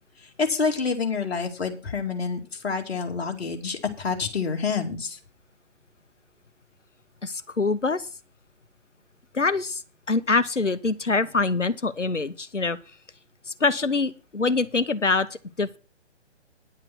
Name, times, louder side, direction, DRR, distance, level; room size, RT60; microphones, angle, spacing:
voice 1, 0.4-5.2, left 5 dB, 60° left, 3 dB, 2.3 m, -27 dB
voice 2, 7.2-8.1 9.3-9.8 10.1-12.8 13.5-15.8, left 3 dB, 90° left, 14 dB, 1.0 m, -24 dB
10.5 x 7.5 x 6.1 m, 0.34 s
figure-of-eight pair, 130°, 35 cm